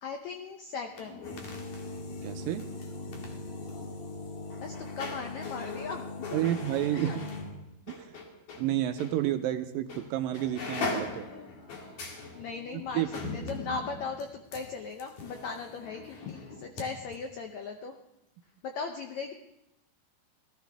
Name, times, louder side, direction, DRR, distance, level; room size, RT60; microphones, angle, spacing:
voice 1, 0.0-1.2 4.6-6.0 6.3-6.5 6.9-7.2 11.3-11.5 12.3-13.0 13.3-17.9 18.6-19.3, left 5 dB, 85° left, 5 dB, 1.6 m, -38 dB
sound 1, 0.9-8.7 9.0-9.1 9.9-10.1 10.3-16.9 17.1-17.2, left 3 dB, 55° left, 3.0 m, -39 dB
voice 2, 2.2-2.7 6.3-7.2 7.9-8.2 8.6-11.3 12.9-13.3, right 13 dB, 80° right, 8 dB, 2.1 m, -30 dB
19.5 x 13.5 x 3.4 m, 0.88 s
omnidirectional pair, 4.4 m